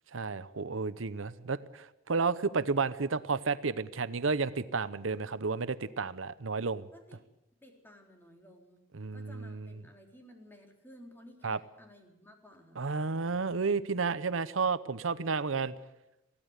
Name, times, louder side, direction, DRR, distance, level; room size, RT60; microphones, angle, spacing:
voice 1, 0.1-6.9 8.9-9.7 11.4-11.6 12.8-15.7, right 4 dB, 85° right, 14 dB, 0.8 m, -32 dB
voice 2, 7.6-8.8 9.1-12.9, equal, 10° left, 3 dB, 3.8 m, -55 dB
22.0 x 16.0 x 8.2 m, 0.92 s
head